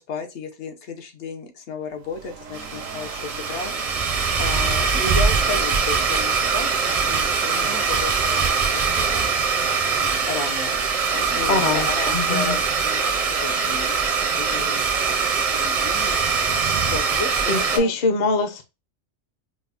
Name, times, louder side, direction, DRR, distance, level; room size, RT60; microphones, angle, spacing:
voice 1, 0.0-3.7 4.4-9.2 10.3-10.8 11.1-17.9, left 4 dB, 65° left, 5 dB, 1.0 m, -34 dB
sound 1, 1.9-11.0, right 5 dB, 90° right, 1.1 m, -39 dB
Domestic sounds home sounds, 2.5-17.8, right 5 dB, 45° right, 0.5 m, -22 dB
voice 2, 11.5-12.6 17.5-18.6, left 3 dB, 50° left, 6 dB, 0.5 m, -23 dB
5.0 x 2.0 x 2.3 m, 0.26 s
omnidirectional pair, 1.3 m